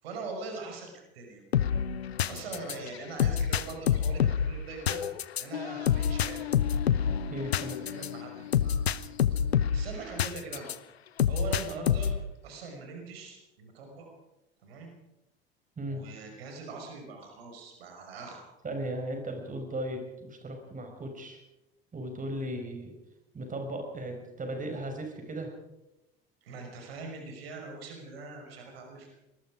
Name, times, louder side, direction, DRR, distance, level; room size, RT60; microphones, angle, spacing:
voice 1, 0.0-1.4 2.3-5.0 5.4-6.4 7.5-8.9 9.3-9.4 9.7-10.7 11.3-12.1 12.4-14.1 14.6-14.9 15.9-18.4 26.4-29.1, right 3 dB, 70° right, 2 dB, 5.7 m, -42 dB
sound 1, 1.5-10.8 11.2-12.3, left 8 dB, 80° left, 0.9 m, -28 dB
voice 2, 7.3-7.9 15.8-16.0 18.6-21.4 21.9-22.9 23.3-25.5, right 1 dB, 25° right, 4 dB, 5.5 m, -36 dB
25.5 x 20.5 x 5.0 m, 0.94 s
figure-of-eight pair, 65°, 31 cm